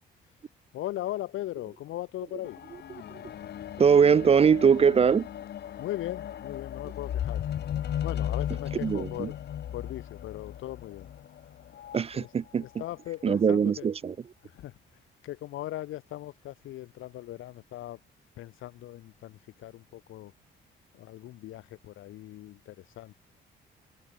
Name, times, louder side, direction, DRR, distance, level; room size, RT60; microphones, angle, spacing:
voice 1, 0.7-2.6 5.8-7.4 8.0-9.4 9.7-11.1 12.2-12.3 12.6-13.9 14.4-14.8 15.2-18.0 18.3-20.3 20.9-23.1, left 14 dB, 85° left, 2.1 m, -39 dB
sound 1, 2.4-12.0 12.8-12.9, left 10 dB, 55° left, 0.9 m, -36 dB
voice 2, 3.8-5.3 8.8-9.3 11.9-12.6 13.2-14.1, right 6 dB, 30° right, 0.4 m, -21 dB
cardioid pair, 90°, 20 cm